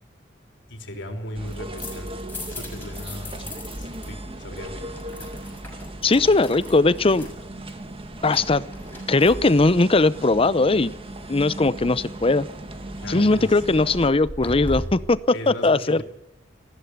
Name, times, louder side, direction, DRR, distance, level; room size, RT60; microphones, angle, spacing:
voice 1, 0.7-3.5 3.8-4.8 13.0-13.6 15.3-16.0, left 1 dB, 90° left, 4 dB, 3.5 m, -37 dB
sound 1, 1.3-14.1, right 1 dB, 30° right, 2.0 m, -37 dB
sound 2, 1.5-4.1 4.3-9.9 13.0-15.2, left 1 dB, 10° left, 6.2 m, -38 dB
voice 2, 6.0-7.3 8.2-8.6 9.1-10.9 11.3-12.5 13.1-15.2 15.5-16.0, left 3 dB, 30° left, 17 dB, 0.7 m, -19 dB
19.5 x 15.0 x 9.6 m, 0.89 s
head